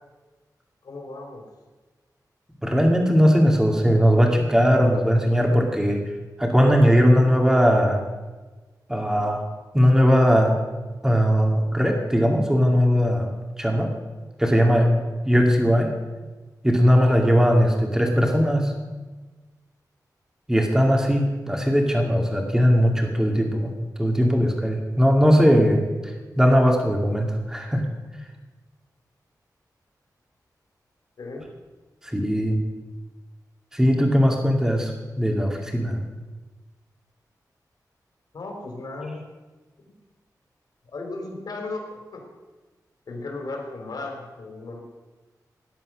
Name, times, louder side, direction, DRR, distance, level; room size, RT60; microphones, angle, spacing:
voice 1, 0.8-1.4 14.9-15.1 31.2-31.5 38.3-39.2 39.8-39.9 40.9-41.8 42.1-42.2 43.1-44.8, left 2 dB, 70° left, 1 dB, 3.9 m, -35 dB
voice 2, 2.6-6.0 6.4-8.0 8.9-9.4 9.7-10.5 11.0-13.3 13.6-13.9 14.4-14.9 15.2-15.9 16.6-18.7 20.5-25.8 26.4-27.9 32.0-32.6 33.7-34.9 35.2-36.1, equal, 10° right, 1 dB, 2.4 m, -19 dB
18.5 x 11.0 x 6.3 m, 1.3 s
wide cardioid pair, 150°, 7 cm